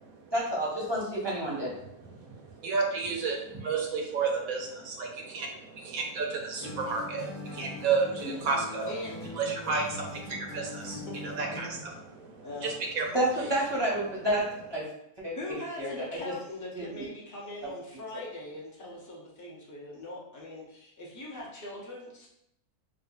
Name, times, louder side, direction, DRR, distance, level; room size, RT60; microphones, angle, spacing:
voice 1, 0.3-1.7 13.1-14.4 14.7-14.8 15.2-15.3 15.8-16.3 16.7-17.0 17.6-17.7, right 1 dB, 25° right, -6 dB, 0.6 m, -29 dB
voice 2, 2.6-5.1 5.3-8.9 9.4-13.1, right 4 dB, 70° right, 1 dB, 0.9 m, -31 dB
sound 1, 6.6-11.9, left 2 dB, 55° left, 0.9 m, -42 dB
voice 3, 12.4-12.7 15.3-22.3, left 1 dB, 20° left, -5 dB, 0.4 m, -41 dB
4.8 x 2.3 x 2.4 m, 0.79 s
omnidirectional pair, 1.6 m